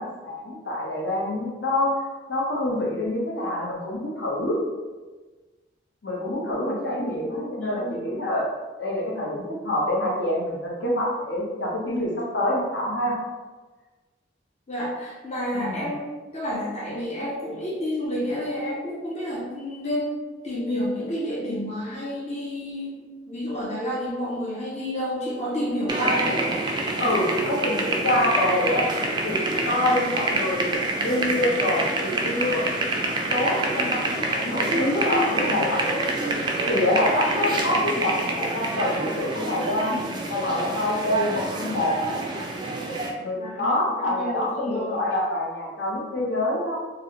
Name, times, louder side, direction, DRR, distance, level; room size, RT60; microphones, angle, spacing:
voice 1, 0.0-4.6 6.0-8.4 8.8-13.2 15.5-15.9 27.0-28.9 29.2-32.6 33.0-36.0 36.7-42.0 43.2-46.8, left 1 dB, 75° left, -4 dB, 0.9 m, -26 dB
voice 2, 6.8-8.1 14.7-20.2 20.4-26.4 37.6-38.0 43.3-44.9, equal, 35° left, -5 dB, 0.5 m, -30 dB
sound 1, 25.9-43.1, right 2 dB, 25° right, 0.3 m, -27 dB
3.0 x 2.7 x 2.9 m, 1.3 s
head